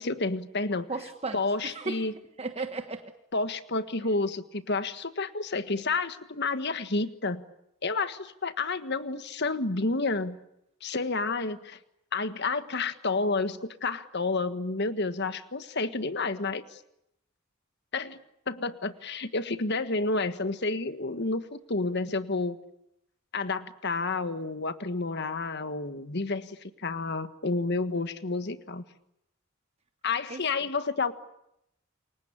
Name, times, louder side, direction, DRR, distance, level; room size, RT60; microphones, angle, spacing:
voice 1, 0.0-0.9 1.3-2.1 3.3-7.4 7.8-10.4 10.8-11.8 12.1-16.8 17.9-18.2 18.5-22.6 23.3-28.8 30.0-31.1, left 3 dB, 55° left, 11 dB, 1.5 m, -30 dB
voice 2, 0.9-2.1 2.4-3.1 30.3-30.4, right 3 dB, 30° right, 7 dB, 1.3 m, -35 dB
28.5 x 23.5 x 8.8 m, 0.82 s
head